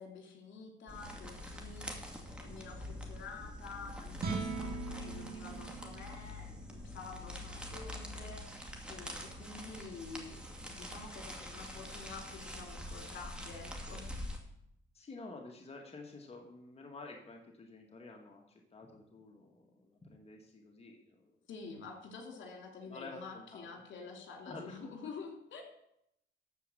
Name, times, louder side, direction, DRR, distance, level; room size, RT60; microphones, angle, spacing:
voice 1, 0.0-14.1 21.5-25.6, left 4 dB, 70° left, 2 dB, 2.8 m, -49 dB
sound 1, 0.9-14.4, left 1 dB, 5° right, 2.2 m, -45 dB
sound 2, 4.1-10.5, right 5 dB, 50° right, 2.3 m, -44 dB
voice 2, 14.9-21.4 22.9-23.7 24.5-24.9, left 3 dB, 30° left, 1 dB, 1.8 m, -50 dB
13.0 x 4.9 x 7.7 m, 0.77 s
cardioid pair, 90°, 20 cm